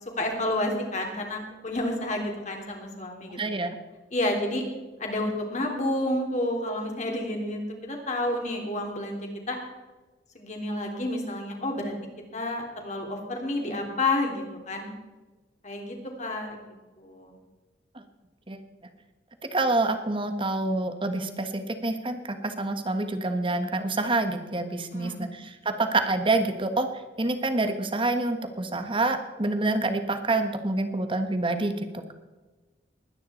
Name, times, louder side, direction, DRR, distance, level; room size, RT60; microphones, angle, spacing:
voice 1, 0.2-3.4 4.1-4.6 5.0-9.6 10.3-11.9 12.3-14.9 15.6-17.4 24.9-25.2, left 1 dB, 40° left, 2 dB, 3.3 m, -30 dB
voice 2, 3.3-3.7 17.9-18.0 18.5-18.6 19.4-26.9 27.2-32.1, right 2 dB, 30° right, 8 dB, 1.4 m, -27 dB
21.0 x 9.9 x 4.4 m, 1.2 s
head